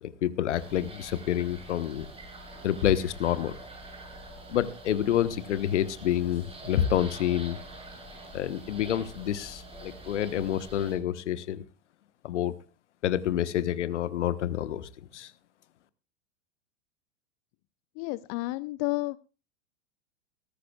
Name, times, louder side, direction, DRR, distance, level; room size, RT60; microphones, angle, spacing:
voice 1, 0.0-2.1 2.6-3.5 4.5-7.6 8.3-11.6 12.2-12.5 13.0-15.3, left 11 dB, 65° left, 13 dB, 1.3 m, -28 dB
sound 1, 0.6-11.0, right 1 dB, 15° right, 7.4 m, -45 dB
voice 2, 18.0-19.2, left 22 dB, 40° left, 18 dB, 0.6 m, -31 dB
20.0 x 14.0 x 2.3 m, 0.31 s
figure-of-eight pair, 90°, 37 cm